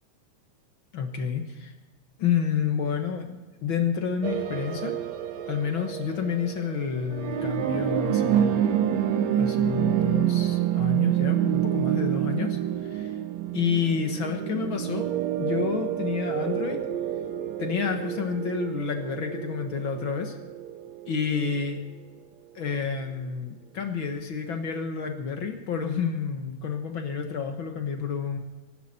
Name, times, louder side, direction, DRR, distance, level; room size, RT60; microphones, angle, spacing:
voice 1, 0.9-1.7 2.2-4.9 5.5-8.6 9.3-13.1 13.5-15.1 15.4-16.8 17.6-20.3 21.1-21.8 22.5-28.4, left 6 dB, 50° left, 5 dB, 1.6 m, -29 dB
sound 1, 4.2-21.9, right 11 dB, 70° right, 1.8 m, -28 dB
24.0 x 12.0 x 4.3 m, 1.2 s
omnidirectional pair, 3.8 m